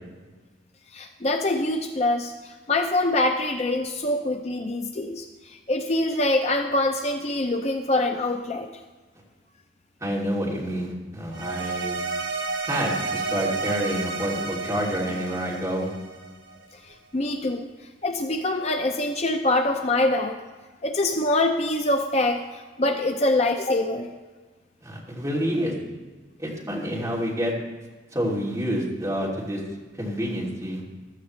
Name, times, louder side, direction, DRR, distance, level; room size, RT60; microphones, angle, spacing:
voice 1, 0.9-8.7 16.8-17.7 18.0-20.4 20.8-22.4 22.8-24.1, left 2 dB, 35° left, 5 dB, 0.6 m, -24 dB
voice 2, 10.0-12.0 12.7-15.9 24.8-25.7 26.4-27.5 28.1-29.6 30.0-30.8, equal, 15° right, -4 dB, 2.8 m, -28 dB
sound 1, 11.3-16.6, right 4 dB, 85° right, 1.4 m, -31 dB
15.5 x 12.5 x 3.2 m, 1.4 s
head